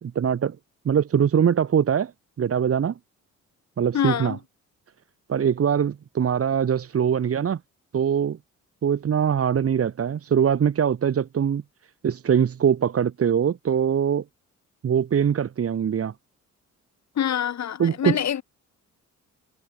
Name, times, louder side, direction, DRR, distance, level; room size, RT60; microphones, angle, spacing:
voice 1, 0.0-0.6 0.8-2.1 2.4-2.9 3.8-4.4 5.3-7.6 7.9-8.4 8.8-11.6 12.0-14.2 14.8-16.1 17.8-18.2, right 8 dB, 50° right, 2.6 m, -22 dB
voice 2, 3.9-4.4 17.2-18.4, left 10 dB, 65° left, 6.3 m, -25 dB
cardioid pair, 90°, 30 cm